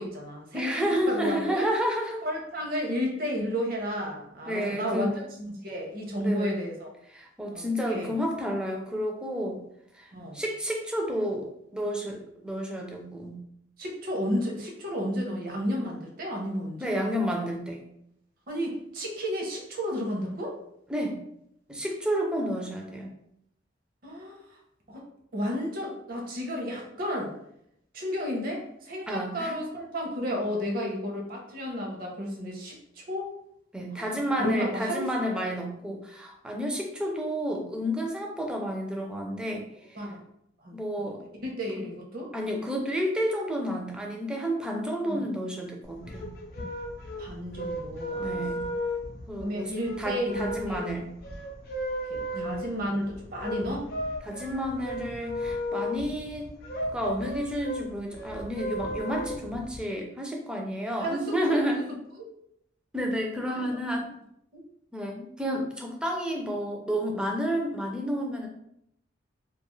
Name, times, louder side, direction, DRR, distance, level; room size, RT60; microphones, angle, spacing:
voice 1, 0.0-1.7 2.2-6.9 7.5-8.2 10.1-10.4 13.8-16.9 18.5-20.6 24.0-24.4 24.9-25.1 25.3-27.3 27.9-33.3 33.9-35.1 35.4-35.6 39.9-40.2 40.6-41.1 41.4-42.3 45.1-45.2 47.2-48.4 49.4-50.8 52.1-53.9 61.0-61.8 62.2-62.3 63.5-63.6 64.0-64.1 64.5-64.7, equal, 50° right, 0 dB, 0.6 m, -32 dB
voice 2, 0.5-2.2 4.5-5.1 6.2-6.5 7.1-9.6 10.0-13.4 16.8-17.8 20.9-21.2 21.7-23.1 29.1-29.6 33.7-40.0 40.7-41.2 41.8-41.9 42.3-46.3 48.2-48.6 49.3-49.7 50.0-51.1 52.3-52.6 54.2-56.5 56.9-61.8 62.9-64.0 64.9-68.5, equal, 5° right, 0 dB, 0.4 m, -30 dB
sound 1, 45.9-59.8, equal, 50° left, 0.5 m, -35 dB
2.5 x 2.3 x 3.0 m, 0.75 s
head